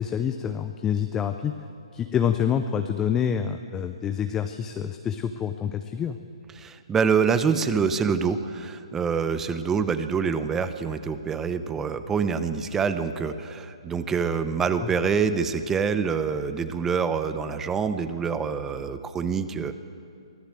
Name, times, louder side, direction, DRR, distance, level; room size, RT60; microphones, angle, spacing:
voice 1, 0.0-1.5 1.9-6.2 14.8-14.9, left 8 dB, 15° left, 7 dB, 0.7 m, -27 dB
voice 2, 6.6-19.7, right 6 dB, 10° right, 11 dB, 0.8 m, -26 dB
24.0 x 15.0 x 7.6 m, 2.4 s
hypercardioid pair, 150°, 3 cm